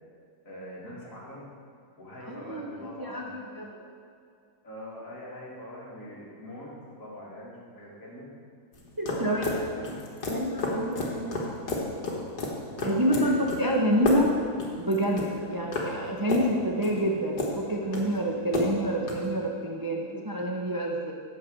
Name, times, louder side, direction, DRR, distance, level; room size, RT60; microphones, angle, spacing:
voice 1, 0.4-1.5 2.0-3.4 4.6-8.3 9.1-10.0 13.1-13.4 15.4-15.6, left 1 dB, 55° left, -5 dB, 2.6 m, -43 dB
voice 2, 2.3-3.8 9.0-9.5 10.3-11.4 12.8-14.3 14.8-21.1, equal, 25° right, -1 dB, 0.5 m, -28 dB
sound 1, 8.7-19.3, left 2 dB, 85° left, 2.1 m, -32 dB
9.1 x 7.3 x 6.4 m, 2.3 s
omnidirectional pair, 1.7 m